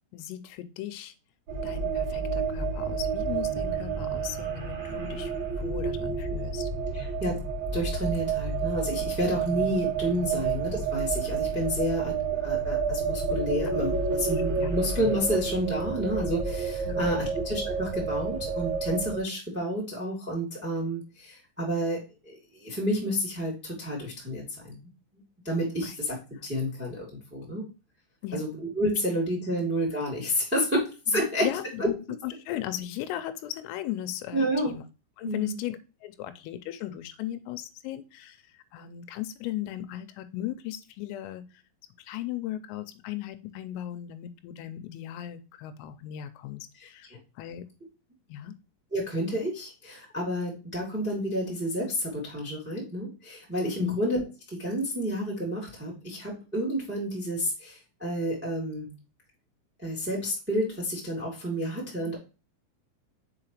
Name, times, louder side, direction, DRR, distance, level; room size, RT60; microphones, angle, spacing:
voice 1, 0.1-1.1 1.6-5.3 5.6-6.7 10.3-10.4 14.6-14.7 16.9-17.3 25.8-26.0 28.2-28.4 31.4-31.9 32.2-34.8 35.2-41.6 42.0-47.1 47.4-47.7 48.3-48.5 53.8-54.0 62.1-62.2, left 12 dB, 90° left, 10 dB, 3.3 m, -37 dB
sound 1, 1.5-19.2, right 5 dB, 85° right, 1.6 m, -30 dB
voice 2, 6.9-7.4 7.7-24.8 25.4-26.2 26.4-27.6 28.3-31.5 31.8-31.9 34.3-34.7 35.2-35.5 46.8-47.2 48.9-54.2 54.5-58.9 59.8-62.2, equal, 10° right, -2 dB, 0.7 m, -30 dB
6.9 x 4.8 x 3.0 m, 0.31 s
omnidirectional pair, 5.9 m